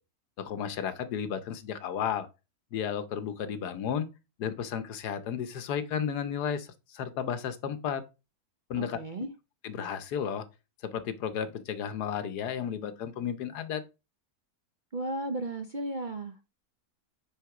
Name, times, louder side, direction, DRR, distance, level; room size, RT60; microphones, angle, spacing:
voice 1, 0.4-2.3 2.7-4.1 4.4-8.0 8.7-9.3 9.6-10.4 10.8-13.8, left 8 dB, 85° left, 1.4 m, -33 dB
voice 2, 8.8-9.3 14.9-16.4, right 2 dB, 50° right, 0.5 m, -34 dB
9.0 x 3.6 x 4.8 m
omnidirectional pair, 1.7 m